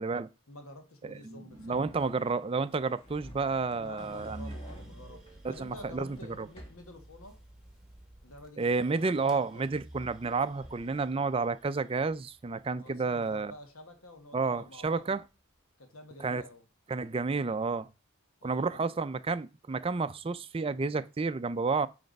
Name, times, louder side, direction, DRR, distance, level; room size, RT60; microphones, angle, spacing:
voice 1, 0.5-1.8 3.8-7.4 8.2-9.7 12.7-15.1 15.8-16.6 18.4-18.9, left 1 dB, 85° left, 1.5 m, -49 dB
voice 2, 1.0-4.5 5.4-6.1 6.4-6.5 8.6-13.5 14.3-15.2 16.2-16.4 16.9-17.9 18.4-21.9, right 4 dB, 25° right, 0.4 m, -31 dB
sound 1, 1.5-6.9 10.2-11.1, equal, 25° left, 1.6 m, -53 dB
sound 2, 4.0-14.2 14.6-15.4, right 1 dB, ahead, 1.4 m, -51 dB
9.1 x 3.3 x 5.3 m
head